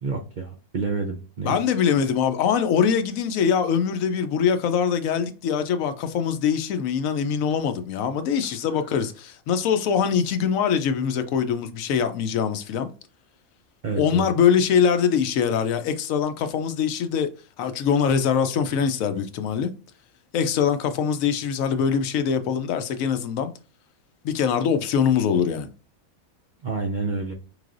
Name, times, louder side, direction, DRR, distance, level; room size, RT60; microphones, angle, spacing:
voice 1, 0.0-1.6 13.8-14.3 26.6-27.3, right 4 dB, 60° right, 0.4 m, -29 dB
voice 2, 1.4-12.9 13.9-17.3 17.6-19.7 20.3-23.5 24.2-25.7, left 7 dB, 75° left, 1.0 m, -23 dB
5.2 x 3.2 x 2.5 m
omnidirectional pair, 1.5 m